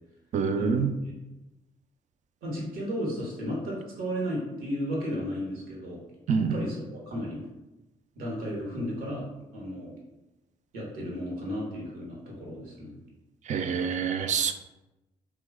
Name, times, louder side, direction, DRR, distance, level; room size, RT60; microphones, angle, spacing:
voice 1, 0.3-0.9 6.3-6.5 13.5-14.5, right 6 dB, 55° right, 9 dB, 0.4 m, -26 dB
voice 2, 2.4-6.0 6.5-7.4 8.2-9.3 9.5-9.9 10.7-12.9, equal, 80° right, -3 dB, 1.0 m, -34 dB
2.9 x 2.3 x 3.5 m, 0.99 s
supercardioid pair, 50°, 15 cm